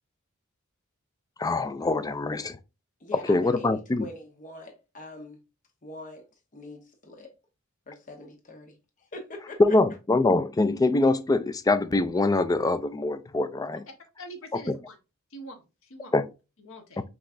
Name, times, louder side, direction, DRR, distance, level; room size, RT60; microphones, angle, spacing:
voice 1, 1.4-2.6 3.3-4.1 9.6-13.8 14.5-14.8 16.1-16.3, left 2 dB, 15° left, 0.3 m, -24 dB
voice 2, 3.0-5.4 5.8-6.3 6.5-7.3 7.9-9.8, left 2 dB, 35° left, 1.0 m, -43 dB
voice 3, 14.2-14.9 15.3-16.1 16.6-17.0, equal, 65° left, 1.1 m, -44 dB
5.8 x 3.1 x 2.5 m
head